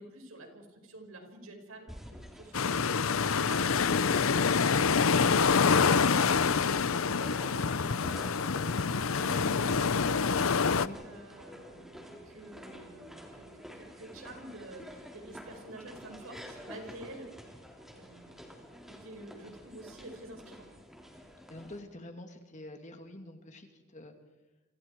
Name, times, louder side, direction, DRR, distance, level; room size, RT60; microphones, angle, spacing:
voice 1, 0.0-17.3 17.9-20.7, right 1 dB, 75° right, 3 dB, 5.4 m, -49 dB
sound 1, 1.9-21.8, equal, ahead, 3.4 m, -50 dB
sound 2, 2.5-10.9, left 5 dB, 75° left, 0.7 m, -26 dB
voice 2, 21.5-24.1, left 1 dB, 35° left, 5 dB, 2.5 m, -46 dB
30.0 x 26.0 x 4.7 m, 1.1 s
head